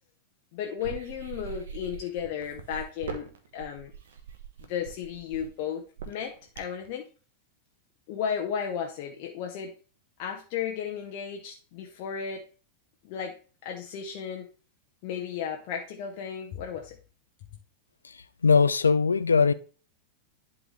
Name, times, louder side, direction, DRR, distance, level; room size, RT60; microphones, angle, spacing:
voice 1, 0.5-3.9 4.7-7.1 8.1-9.7 10.2-12.4 13.0-13.3 13.6-14.5 15.0-17.0, left 8 dB, 45° left, 0.8 m, -34 dB
sound 1, 0.8-6.9, right 7 dB, 60° right, 1.0 m, -41 dB
voice 2, 18.0-19.5, left 5 dB, 75° left, 0.4 m, -21 dB
11.0 x 3.8 x 3.2 m
figure-of-eight pair, 90°, 0 cm